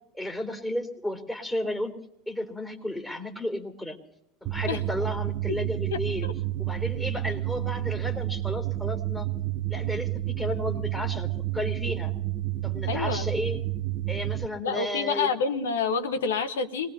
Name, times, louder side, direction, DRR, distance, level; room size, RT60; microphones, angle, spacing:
voice 1, 0.1-1.9 2.3-4.0 4.4-6.3 6.6-9.3 9.7-12.1 12.6-13.6 14.1-15.3, left 1 dB, 10° left, 3 dB, 3.9 m, -33 dB
sound 1, 4.5-14.5, right 15 dB, 50° right, 0.9 m, -30 dB
voice 2, 12.9-13.2 14.6-16.9, left 5 dB, 80° left, 9 dB, 1.3 m, -28 dB
26.5 x 19.5 x 2.8 m, 0.79 s
hypercardioid pair, 75°, 0 cm